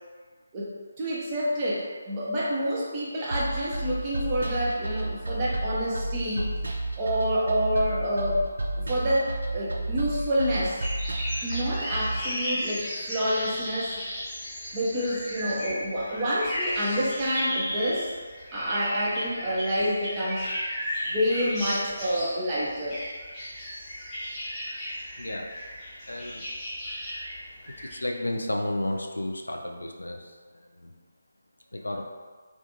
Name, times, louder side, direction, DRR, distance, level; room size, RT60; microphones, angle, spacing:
voice 1, 0.5-6.5 7.0-8.4 8.8-10.8 11.4-14.0 14.7-18.1 18.5-20.5 21.1-23.0, equal, 25° right, -7 dB, 0.6 m, -28 dB
sound 1, 3.3-12.2, right 2 dB, 70° right, 0.4 m, -31 dB
sound 2, 10.8-28.0, equal, 10° left, 0.8 m, -35 dB
voice 2, 25.2-25.5 26.1-26.5 27.8-30.9 31.7-32.0, left 1 dB, 80° left, 2 dB, 0.3 m, -32 dB
2.5 x 2.4 x 2.7 m, 1.5 s
figure-of-eight pair, 150°, 0 cm